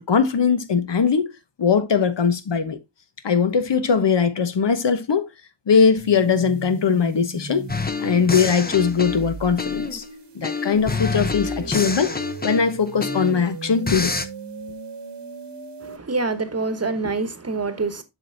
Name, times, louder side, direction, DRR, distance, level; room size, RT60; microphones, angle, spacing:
voice 1, 0.0-1.3 1.6-2.8 3.2-5.3 5.7-7.7 8.0-10.0 10.3-12.1 12.4-14.1, left 6 dB, 70° left, 1.0 m, -20 dB
sound 1, 6.0-16.0, right 4 dB, 70° right, 1.1 m, -37 dB
sound 2, 7.7-10.0 10.4-13.5 13.9-14.2, left 4 dB, 20° left, 0.7 m, -27 dB
voice 2, 15.8-18.0, right 3 dB, 35° right, 1.1 m, -26 dB
7.4 x 6.0 x 2.6 m
wide cardioid pair, 75°, 44 cm